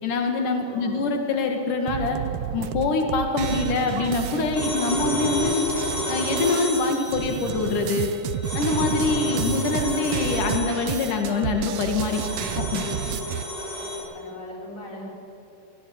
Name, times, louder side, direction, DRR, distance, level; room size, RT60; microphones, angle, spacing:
voice 1, 0.0-2.2 2.5-5.7 6.1-8.1 8.5-12.2 12.6-12.9, left 3 dB, 85° left, 3 dB, 3.7 m, -24 dB
voice 2, 0.6-1.0 13.7-15.1, left 1 dB, 25° left, -2 dB, 5.8 m, -40 dB
sound 1, 1.9-13.4, right 12 dB, 85° right, 1.3 m, -31 dB
sound 2, 3.4-14.0, left 1 dB, 15° right, 8.0 m, -32 dB
25.0 x 20.5 x 8.7 m, 2.8 s
omnidirectional pair, 3.5 m